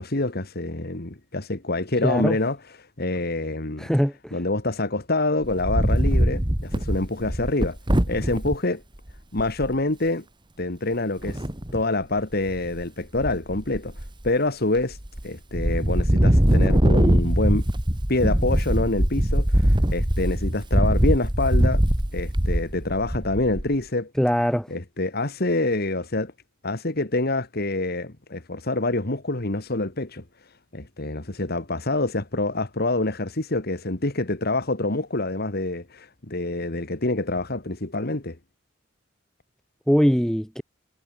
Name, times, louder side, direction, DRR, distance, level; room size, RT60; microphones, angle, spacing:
voice 1, 0.0-2.6 3.0-3.9 4.3-7.8 8.1-8.8 9.3-10.2 10.6-11.4 11.7-15.0 15.2-17.7 18.1-21.8 22.1-24.1 24.7-26.3 26.6-30.2 30.7-38.4, left 2 dB, 50° left, 2.1 m, -26 dB
voice 2, 2.0-2.4 3.8-4.4 24.2-24.7 39.9-40.6, equal, 5° left, 3.8 m, -21 dB
Wind, 5.4-8.6 9.1-9.2 9.4-9.8 11.2-11.8 12.3-12.8 13.1-14.3 14.8-15.2 15.5-23.8, equal, 25° right, 2.0 m, -22 dB
head